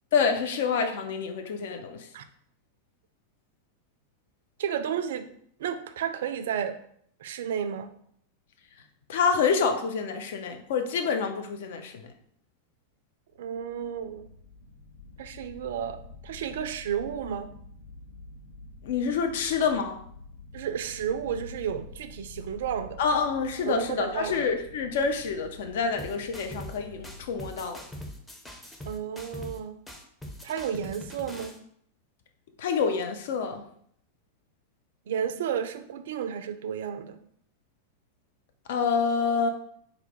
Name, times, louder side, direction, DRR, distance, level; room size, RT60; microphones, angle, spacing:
voice 1, 0.1-2.0 9.1-12.1 18.8-20.0 23.0-27.8 32.6-33.6 38.7-39.5, left 5 dB, 55° left, 6 dB, 0.4 m, -27 dB
voice 2, 4.6-5.3 5.6-6.7 7.2-7.9 13.4-14.3 15.2-17.5 20.5-23.0 23.7-24.4 28.9-29.8 30.4-31.5 35.1-37.2, right 8 dB, 55° right, 9 dB, 0.3 m, -32 dB
sound 1, 13.3-27.7, left 3 dB, 80° left, 1.0 m, -48 dB
sound 2, 26.0-26.8 27.0-29.6 29.9-31.6, left 1 dB, 5° left, 0.6 m, -42 dB
4.0 x 2.1 x 4.3 m, 0.66 s
figure-of-eight pair, 90°, 0 cm